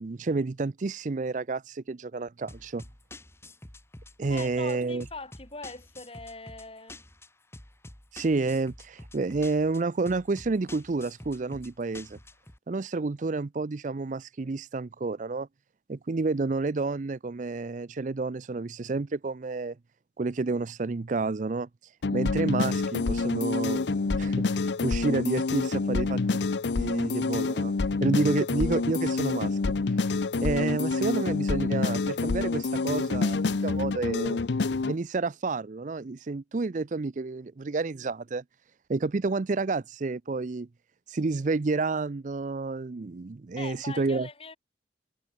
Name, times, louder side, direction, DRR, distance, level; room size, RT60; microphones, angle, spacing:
voice 1, 0.0-2.8 4.2-5.0 8.1-12.2 12.7-15.5 15.9-19.8 20.2-21.7 22.1-26.4 26.8-27.7 28.0-29.7 30.4-34.4 34.9-38.4 38.9-40.7 41.1-44.3, right 3 dB, 45° right, 0.5 m, -30 dB
sound 1, 2.5-12.6, left 1 dB, 15° left, 1.8 m, -48 dB
voice 2, 4.3-7.0 43.6-44.6, left 3 dB, 30° left, 5.3 m, -42 dB
sound 2, 22.0-34.9, left 3 dB, 70° left, 0.6 m, -27 dB
head